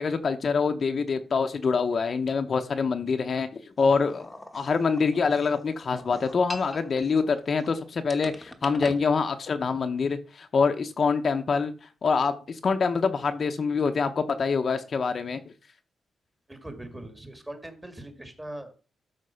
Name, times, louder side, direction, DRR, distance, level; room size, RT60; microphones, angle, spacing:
voice 1, 0.0-15.4, left 5 dB, 40° left, 0.8 m, -25 dB
sound 1, 4.0-7.7 8.1-9.0, left 1 dB, 5° left, 1.1 m, -43 dB
voice 2, 16.5-18.7, right 1 dB, 10° right, 1.7 m, -41 dB
13.0 x 4.4 x 5.7 m
wide cardioid pair, 155°, 0 cm